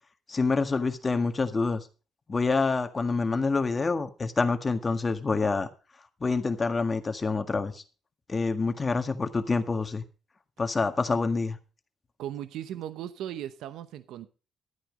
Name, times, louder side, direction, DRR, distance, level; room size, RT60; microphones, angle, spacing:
voice 1, 0.3-1.9 2.3-5.7 6.2-7.8 8.3-10.0 10.6-11.6, left 4 dB, 30° left, 7 dB, 1.7 m, -27 dB
voice 2, 12.2-14.3, right 11 dB, 85° right, 12 dB, 0.8 m, -37 dB
13.0 x 9.2 x 5.1 m, 0.34 s
cardioid pair, 90°, 0 cm